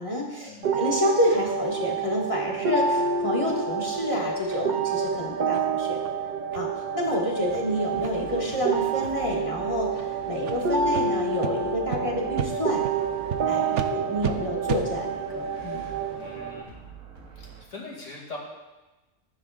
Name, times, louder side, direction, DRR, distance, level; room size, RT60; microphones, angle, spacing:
voice 1, 0.0-6.0 6.5-12.8 13.5-15.8, left 1 dB, 25° left, -4 dB, 1.9 m, -28 dB
sound 1, 0.6-16.6, right 5 dB, 50° right, 0.6 m, -28 dB
sound 2, 4.5-4.6 5.0-5.1 5.5-5.7 6.0-6.1 6.5-6.6 7.0-7.2 7.5-7.6 8.0-8.1 8.5-8.6 9.0-9.3 9.9-10.0 10.4-10.6 10.9-11.0 11.4-11.5 11.9-12.0 12.4-12.5 12.8-13.0 13.3-13.4 13.7-13.9 14.2-14.3 14.7-14.8, right 9 dB, 65° right, 1.0 m, -32 dB
sound 3, 7.4-17.6, right 5 dB, 90° right, 1.9 m, -46 dB
voice 2, 13.5-13.9 15.4-16.8 17.4-18.4, left 2 dB, 65° left, -3 dB, 2.8 m, -43 dB
15.0 x 9.8 x 2.5 m, 1.1 s
omnidirectional pair, 1.4 m